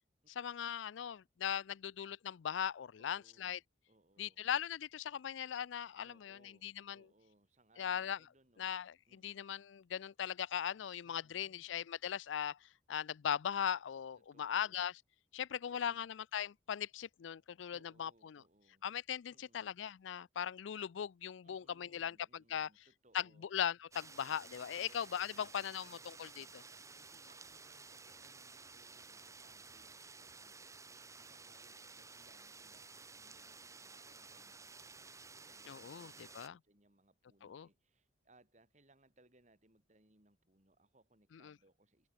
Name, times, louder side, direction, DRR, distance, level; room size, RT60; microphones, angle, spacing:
voice 1, 0.4-3.6 4.2-7.0 7.8-8.2 8.6-12.6 12.9-14.9 15.3-18.4 18.8-22.7 23.1-23.2 23.5-26.6 35.7-36.6 37.4-37.7 41.4-41.5, left 9 dB, 80° left, 0.4 m, -39 dB
voice 2, 3.0-4.5 6.0-8.7 9.1-9.5 11.0-12.0 14.2-14.9 15.5-16.1 17.7-18.9 19.3-19.7 21.4-23.5 24.7-25.0 25.3-26.6 27.0-30.9 31.2-42.1, right 1 dB, 40° right, 5.9 m, -70 dB
sound 1, 23.9-36.5, right 4 dB, 15° right, 2.4 m, -54 dB
head